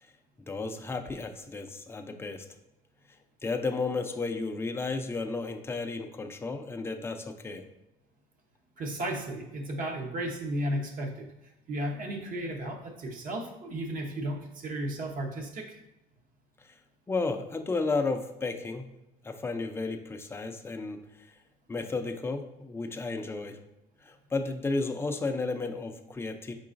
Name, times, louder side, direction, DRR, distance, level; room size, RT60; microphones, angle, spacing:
voice 1, 0.5-2.5 3.4-7.6 17.1-18.9 19.2-21.0 21.7-23.6 24.0-26.5, left 3 dB, 15° left, 6 dB, 0.4 m, -33 dB
voice 2, 8.8-11.3 11.7-15.8, right 1 dB, 55° right, 2 dB, 0.8 m, -34 dB
4.8 x 3.8 x 2.5 m, 0.92 s
cardioid pair, 110°, 17 cm